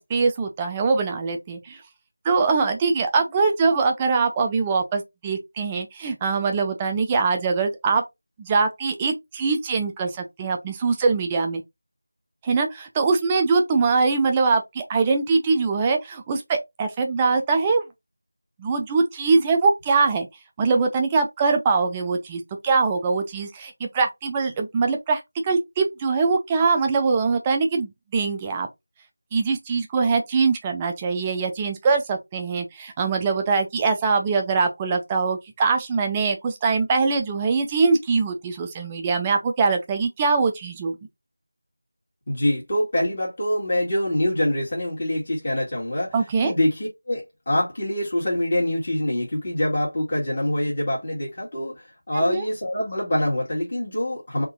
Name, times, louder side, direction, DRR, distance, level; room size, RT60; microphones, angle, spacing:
voice 1, 0.1-1.8 2.2-8.0 8.4-11.6 12.4-17.8 18.6-20.3 20.6-28.7 29.3-41.0 46.1-46.5 52.1-52.4, right 4 dB, 15° right, 0.5 m, -22 dB
voice 2, 42.3-46.1 46.4-54.4, left 1 dB, 40° left, 1.8 m, -25 dB
3.7 x 2.8 x 3.7 m
figure-of-eight pair, 170°, 0 cm